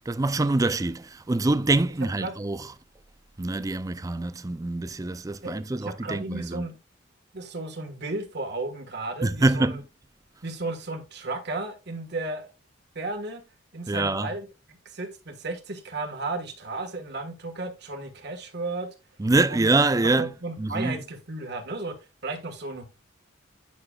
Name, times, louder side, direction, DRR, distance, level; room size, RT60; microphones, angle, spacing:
voice 1, 0.1-2.7 3.4-6.7 9.2-9.8 13.9-14.3 19.2-20.3 20.6-21.0, right 2 dB, 15° right, 0.4 m, -25 dB
voice 2, 5.4-6.8 7.3-9.8 10.4-12.5 12.9-13.4 13.7-14.5 14.8-18.9 19.5-19.7 20.2-21.9 22.2-22.8, right 2 dB, 55° right, 1.5 m, -34 dB
9.6 x 5.8 x 2.3 m
head